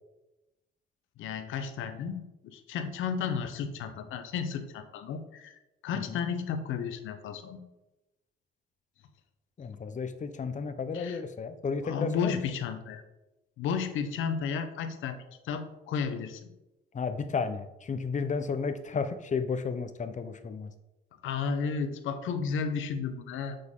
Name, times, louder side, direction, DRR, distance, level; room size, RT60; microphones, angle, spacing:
voice 1, 1.2-7.6 10.9-11.2 11.8-13.0 13.6-15.2 15.4-16.4 21.2-23.6, left 6 dB, 85° left, 9 dB, 0.9 m, -33 dB
voice 2, 9.6-12.4 16.9-20.7, left 5 dB, 40° left, 9 dB, 0.9 m, -33 dB
7.9 x 6.9 x 3.8 m, 0.99 s
cardioid pair, 90°, 20 cm